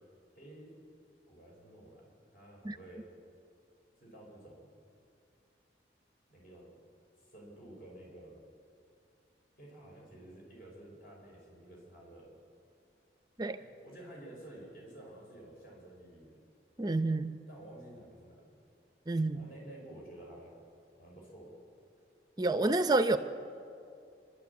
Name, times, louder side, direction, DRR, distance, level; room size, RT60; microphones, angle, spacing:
voice 1, 0.4-0.7 1.3-3.1 4.0-4.8 6.3-6.8 7.2-8.4 9.6-12.4 13.6-16.4 17.5-18.5 19.3-20.6 21.0-21.5, right 1 dB, 50° left, -2 dB, 5.3 m, -52 dB
voice 2, 16.8-17.4 19.1-19.4 22.4-23.2, right 2 dB, 20° right, 9 dB, 0.6 m, -28 dB
26.5 x 12.5 x 8.3 m, 2.5 s
head